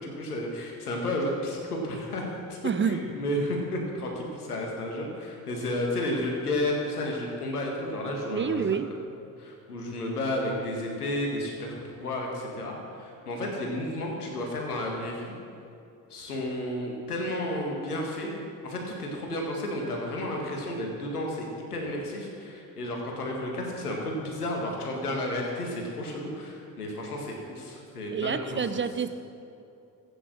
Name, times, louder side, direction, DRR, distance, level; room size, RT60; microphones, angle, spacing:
voice 1, 0.0-2.2 2.5-2.6 2.8-8.8 9.4-15.3 16.1-18.3 18.6-28.8, left 1 dB, 90° left, 0 dB, 1.9 m, -32 dB
voice 2, 2.6-3.0 8.2-8.9 28.1-29.1, right 6 dB, 25° right, 12 dB, 0.7 m, -28 dB
15.0 x 9.1 x 6.2 m, 2.6 s
figure-of-eight pair, 50°, 44 cm